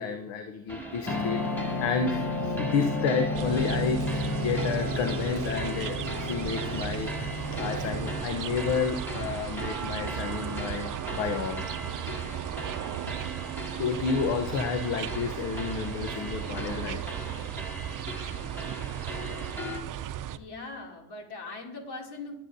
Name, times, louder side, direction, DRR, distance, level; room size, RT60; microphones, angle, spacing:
voice 1, 0.0-7.1 7.5-11.7 13.8-17.0, left 5 dB, 75° left, 6 dB, 1.0 m, -31 dB
sound 1, 0.7-19.8, right 1 dB, 5° left, 3.1 m, -39 dB
sound 2, 1.1-8.2, left 2 dB, 40° left, 1.3 m, -32 dB
sound 3, 3.3-20.4, right 11 dB, 45° right, 0.6 m, -36 dB
voice 2, 20.3-22.4, left 3 dB, 60° left, 1 dB, 2.8 m, -40 dB
20.0 x 8.3 x 2.7 m, 0.89 s
hypercardioid pair, 55°, 45 cm